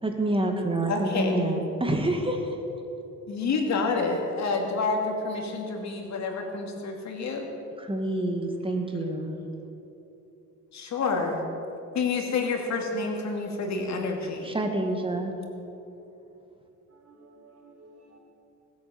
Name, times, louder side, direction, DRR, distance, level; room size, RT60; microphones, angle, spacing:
voice 1, 0.0-2.6 7.8-9.4 14.4-15.3, right 1 dB, 15° right, 3 dB, 2.3 m, -27 dB
voice 2, 0.9-1.4 3.3-7.5 10.7-11.5 11.9-14.6, left 4 dB, 65° left, 2 dB, 2.5 m, -28 dB
voice 3, 16.9-18.2, right 2 dB, 55° right, -1 dB, 3.7 m, -54 dB
18.5 x 8.5 x 7.2 m, 2.9 s
cardioid pair, 90°, 30 cm